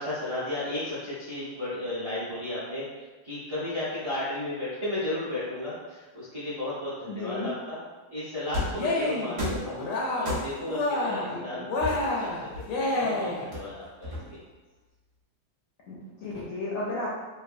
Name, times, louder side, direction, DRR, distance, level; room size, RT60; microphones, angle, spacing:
voice 1, 0.0-7.8 8.1-12.7 12.9-14.4, left 1 dB, 35° right, -10 dB, 0.5 m, -34 dB
voice 2, 7.1-7.5 11.1-11.7 15.9-17.2, left 2 dB, 70° left, -6 dB, 0.8 m, -34 dB
sound 1, 8.5-8.9 9.4-9.7 10.2-10.7 11.8-12.9 13.5-14.5, left 1 dB, 55° right, 1.0 m, -33 dB
Cheering, 8.7-9.4 9.7-10.4 10.7-11.4 11.7-13.5, left 2 dB, 85° left, 1.2 m, -28 dB
3.1 x 2.2 x 2.5 m, 1.2 s
omnidirectional pair, 1.8 m